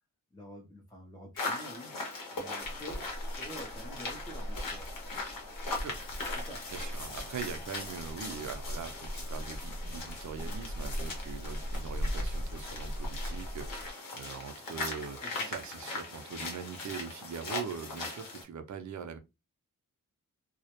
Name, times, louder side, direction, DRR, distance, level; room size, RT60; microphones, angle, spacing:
voice 1, 0.3-4.9 6.4-6.7 15.2-15.5, equal, 10° left, 0.4 m, -48 dB
sound 1, 1.4-18.4, left 3 dB, 90° left, 0.9 m, -40 dB
sound 2, 2.6-13.9, equal, 60° left, 0.8 m, -39 dB
voice 2, 6.7-19.2, right 6 dB, 60° right, 0.5 m, -42 dB
2.2 x 2.0 x 2.8 m
wide cardioid pair, 145°, 32 cm